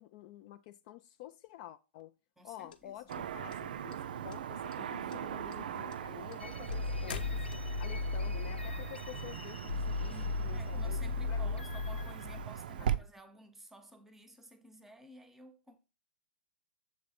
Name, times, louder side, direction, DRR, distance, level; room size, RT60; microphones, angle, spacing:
voice 1, 0.0-2.1 2.4-7.4 7.8-11.0 11.3-11.6 12.8-12.9, left 14 dB, 40° left, 0.4 m, -50 dB
voice 2, 2.4-3.2 5.0-5.3 10.1-15.8, right 1 dB, 5° right, 0.9 m, -54 dB
sound 1, 2.7-4.0 4.3-4.8 5.1-7.9, left 8 dB, 55° left, 0.9 m, -45 dB
Car passing by / Traffic noise roadway noise, 3.1-13.0, right 9 dB, 55° right, 0.4 m, -40 dB
sound 2, 6.4-12.5, left 3 dB, 85° left, 0.6 m, -36 dB
7.5 x 3.7 x 5.8 m
figure-of-eight pair, 110°, 6 cm